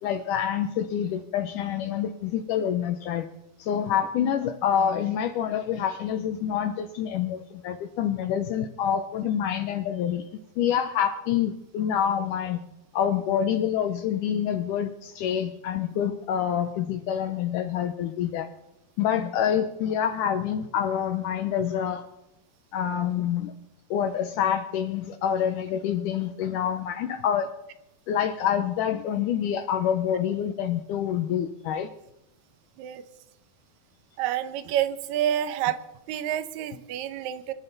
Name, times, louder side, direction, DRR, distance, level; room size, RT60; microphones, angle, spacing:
voice 1, 0.0-3.3 3.6-10.2 10.6-12.6 12.9-18.5 19.0-22.0 22.7-23.5 23.9-27.5 28.1-31.9, left 9 dB, 80° left, 8 dB, 1.9 m, -27 dB
voice 2, 34.2-35.8 36.1-37.5, right 11 dB, 80° right, 12 dB, 1.7 m, -28 dB
25.5 x 13.0 x 4.0 m, 0.90 s
omnidirectional pair, 4.5 m